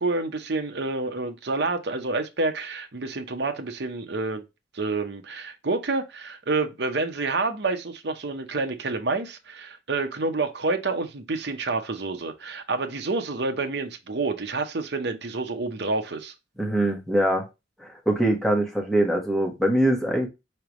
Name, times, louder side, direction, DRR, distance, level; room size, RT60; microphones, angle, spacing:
voice 1, 0.0-4.4 4.7-16.3, right 3 dB, 60° right, 0.8 m, -28 dB
voice 2, 16.6-17.5 17.8-20.3, right 1 dB, ahead, 1.4 m, -23 dB
4.8 x 3.3 x 3.1 m
head